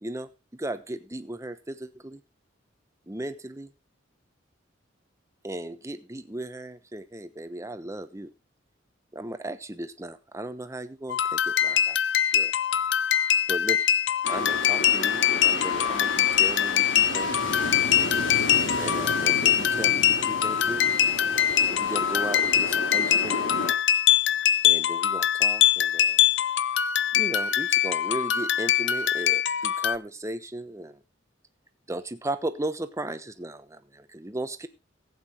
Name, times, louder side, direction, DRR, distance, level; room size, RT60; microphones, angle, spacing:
voice 1, 0.0-2.2 3.1-3.7 5.4-8.3 9.1-12.0 12.3-12.5 13.5-13.9 14.3-17.4 18.8-20.9 21.7-23.6 24.6-26.2 27.1-31.0 31.9-34.7, right 1 dB, 15° right, 10 dB, 1.0 m, -36 dB
sound 1, 11.1-30.0, left 10 dB, 65° left, 0.6 m, -23 dB
sound 2, 14.2-23.7, left 1 dB, 85° left, 4.0 m, -32 dB
15.5 x 8.5 x 4.3 m, 0.28 s
head